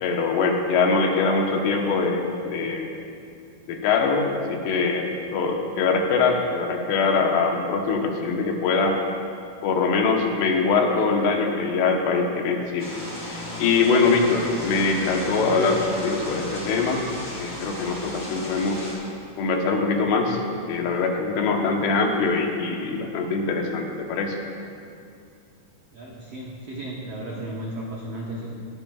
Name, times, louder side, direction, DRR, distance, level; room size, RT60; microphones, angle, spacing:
voice 1, 0.0-2.9 3.7-9.0 9.6-13.0 13.3-17.0 17.3-18.9 19.4-20.4 20.7-24.4, left 4 dB, 90° left, 1 dB, 3.3 m, -23 dB
sound 1, 12.8-18.9, left 1 dB, 30° left, 3.9 m, -34 dB
voice 2, 25.9-28.5, right 1 dB, 80° right, -4 dB, 1.4 m, -34 dB
20.0 x 12.0 x 2.4 m, 2.5 s
omnidirectional pair, 4.7 m